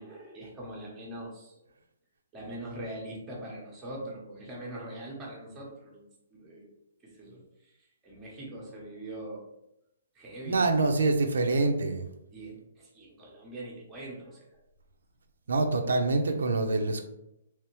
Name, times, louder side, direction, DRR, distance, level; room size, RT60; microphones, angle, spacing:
voice 1, 0.0-1.7 2.3-6.7 7.0-7.8 8.0-9.5 10.1-10.6 12.3-14.6 16.8-16.9, right 1 dB, 10° right, -5 dB, 0.7 m, -42 dB
voice 2, 10.4-12.1 15.5-17.0, right 3 dB, 85° right, 5 dB, 0.5 m, -25 dB
3.4 x 3.2 x 3.0 m, 0.83 s
hypercardioid pair, 175°, 0 cm